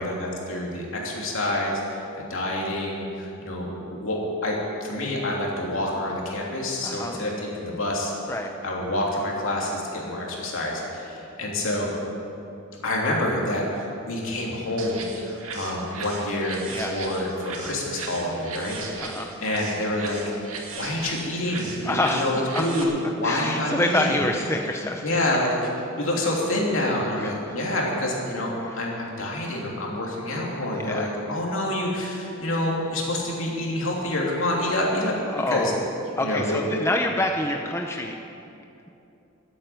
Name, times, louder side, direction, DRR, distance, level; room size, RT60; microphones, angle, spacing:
voice 1, 0.0-8.1 8.6-11.9 12.8-16.6 16.9-18.8 19.4-24.2 25.0-25.5 26.0-35.2 35.5-35.7 36.2-36.6, left 1 dB, 65° left, -3 dB, 3.1 m, -27 dB
voice 2, 6.8-7.2 8.3-8.5 16.7-16.9 19.0-19.3 21.8-22.4 23.2-25.1 27.2-27.3 28.6-28.8 30.7-31.1 35.3-35.9 36.2-38.2, left 1 dB, 10° left, 3 dB, 0.6 m, -27 dB
sound 1, 14.8-22.8, right 4 dB, 85° right, 2.0 m, -37 dB
13.0 x 9.0 x 9.4 m, 2.8 s
head